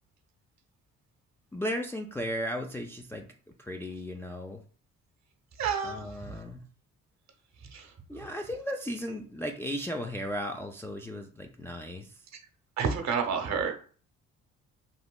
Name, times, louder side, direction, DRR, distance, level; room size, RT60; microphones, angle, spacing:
voice 1, 1.5-4.6 5.8-6.6 8.1-12.2, equal, 5° left, 2 dB, 0.4 m, -36 dB
voice 2, 5.6-6.0 6.2-6.3 7.7-7.9 12.8-13.7, right 6 dB, 55° right, 3 dB, 0.9 m, -29 dB
3.2 x 2.8 x 2.2 m, 0.42 s
supercardioid pair, 65°, 32 cm